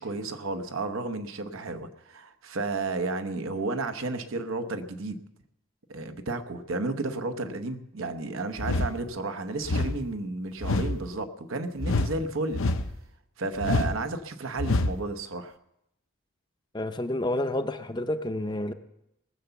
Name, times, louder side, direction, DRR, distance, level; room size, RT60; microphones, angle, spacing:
voice 1, 0.0-5.2 5.9-12.6 13.4-15.5, right 3 dB, 75° right, 9 dB, 1.0 m, -32 dB
sound 1, 8.6-9.0 9.7-10.0 10.6-11.0 11.8-12.2 12.5-13.0 13.6-14.0 14.6-15.0, left 2 dB, 75° left, 0.8 m, -26 dB
voice 2, 16.7-18.7, left 1 dB, 20° left, 8 dB, 0.6 m, -29 dB
19.5 x 7.0 x 7.0 m, 0.81 s
head